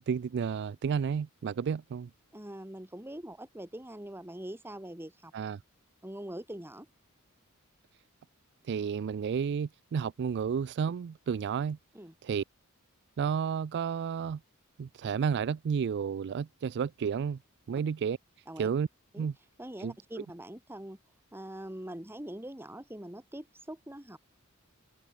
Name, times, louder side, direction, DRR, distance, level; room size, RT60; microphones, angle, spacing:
voice 1, 0.1-2.1 5.3-5.6 8.7-11.8 12.2-12.4 13.2-14.4 14.8-17.4 17.7-18.2 18.6-18.9 19.2-19.3 19.8-19.9, right 6 dB, 50° right, 0.3 m, -31 dB
voice 2, 2.3-5.3 6.0-6.9 11.9-12.1 18.5-18.7 19.1-19.3 19.6-21.0 21.3-24.2, right 1 dB, 10° right, 2.7 m, -43 dB
head